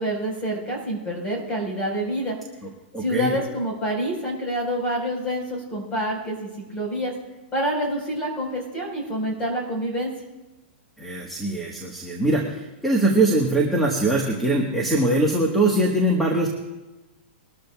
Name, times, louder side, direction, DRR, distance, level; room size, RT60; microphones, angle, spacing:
voice 1, 0.0-2.4 3.0-7.1 7.5-10.1, equal, 15° left, -1 dB, 4.4 m, -27 dB
voice 2, 2.9-3.3 11.0-16.5, right 2 dB, ahead, -1 dB, 1.3 m, -22 dB
22.0 x 13.0 x 2.3 m, 1.1 s
hypercardioid pair, 160°, 6 cm